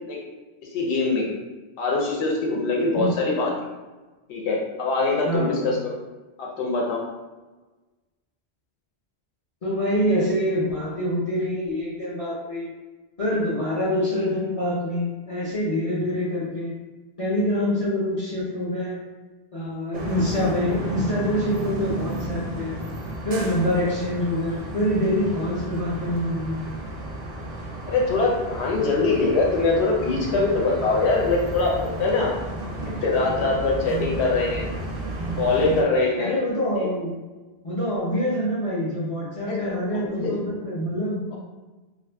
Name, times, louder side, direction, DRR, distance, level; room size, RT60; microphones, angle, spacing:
voice 1, 0.7-1.3 1.8-3.5 4.3-6.0 6.4-7.0 27.9-32.3 32.8-34.7 35.4-36.3 36.8-36.9 39.5-39.6 39.9-40.4, left 3 dB, 85° left, -2 dB, 0.9 m, -23 dB
voice 2, 5.3-5.7 9.6-12.8 13.2-16.8 17.2-19.0 19.5-22.8 23.2-26.7 36.2-37.2 37.6-41.4, left 1 dB, 40° left, -7 dB, 0.6 m, -26 dB
sound 1, 19.9-35.8, right 2 dB, 55° right, 0.5 m, -32 dB
2.6 x 2.5 x 3.3 m, 1.2 s
omnidirectional pair, 1.1 m